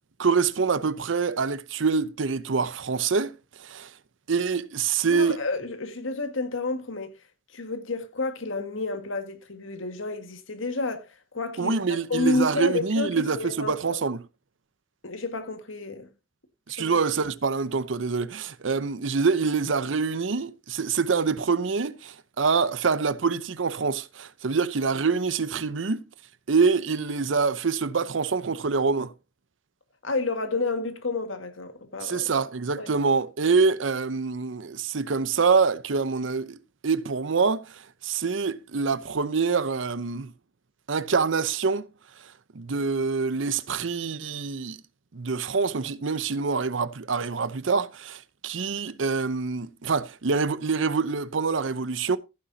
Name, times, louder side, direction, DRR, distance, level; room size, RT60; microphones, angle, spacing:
voice 1, 0.2-3.3 3.6-3.9 4.3-5.4 11.6-14.2 16.7-26.0 26.5-29.1 32.0-40.3 40.9-41.9 42.2-44.8 45.1-52.2, right 5 dB, 70° right, 0.7 m, -25 dB
voice 2, 5.1-7.1 7.5-14.0 15.0-16.1 16.8-16.9 30.0-32.3 32.8-32.9, left 3 dB, 90° left, 1.8 m, -30 dB
14.5 x 9.9 x 2.7 m
head